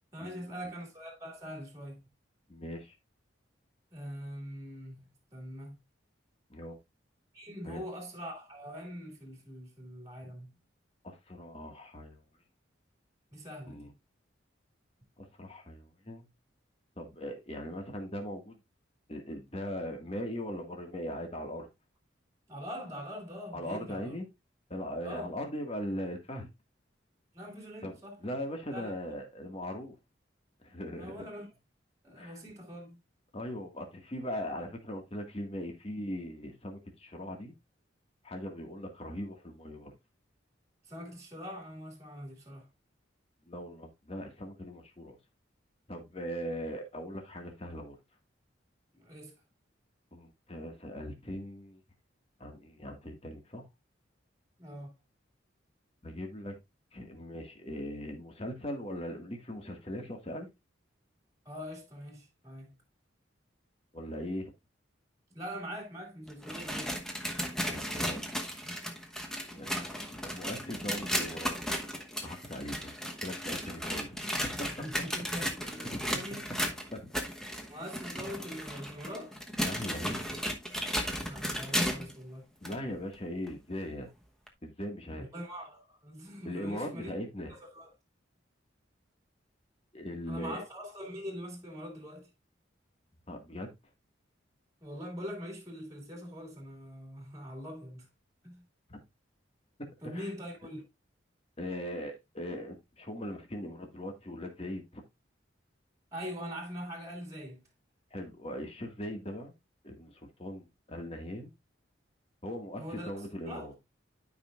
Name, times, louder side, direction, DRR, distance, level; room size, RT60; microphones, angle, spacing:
voice 1, 0.1-2.0 3.9-5.8 7.3-10.5 13.3-13.8 22.5-24.2 25.0-25.3 27.3-28.2 28.7-29.2 31.0-31.5 32.0-33.0 40.8-42.7 48.9-49.3 54.6-54.9 61.4-62.8 65.3-67.0 74.8-76.5 77.7-79.4 81.2-82.5 85.2-87.1 87.5-87.9 90.3-92.3 94.8-98.1 98.4-98.6 100.0-100.8 106.1-107.6 112.8-113.7, equal, 15° right, 2.5 m, -43 dB
voice 2, 2.5-3.0 6.5-6.8 7.6-7.8 11.0-12.2 13.7-13.9 15.2-16.3 17.0-18.6 19.1-21.7 23.5-24.3 24.7-26.5 27.8-30.0 30.6-31.3 32.2-32.4 33.3-37.5 38.2-39.9 43.5-45.2 45.9-48.0 50.1-51.8 52.4-53.7 56.0-56.5 56.9-60.5 63.9-64.5 67.5-68.4 69.5-69.7 70.1-71.5 72.2-74.4 75.9-76.2 76.9-77.0 79.6-80.2 82.6-84.1 84.6-85.3 86.4-87.5 89.9-90.6 93.3-93.7 98.9-99.0 100.0-100.3 101.6-105.0 108.1-109.5 109.8-111.5 112.4-113.7, equal, 30° left, 1.8 m, -40 dB
sound 1, 66.3-82.2 82.6-82.8 83.5-83.6 84.5-84.6, equal, 5° left, 1.1 m, -35 dB
12.5 x 5.4 x 2.5 m
head